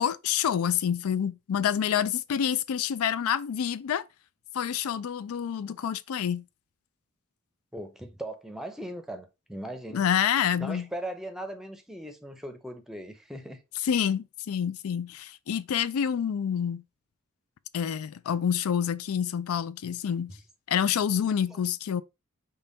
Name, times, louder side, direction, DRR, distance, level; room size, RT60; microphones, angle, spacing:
voice 1, 0.0-4.0 4.5-6.4 9.9-10.9 13.8-16.8 17.7-20.3 20.7-22.0, left 8 dB, 80° left, 0.4 m, -27 dB
voice 2, 7.7-10.0 10.6-13.6 21.5-21.6, right 1 dB, ahead, 0.6 m, -39 dB
5.4 x 2.3 x 3.9 m
head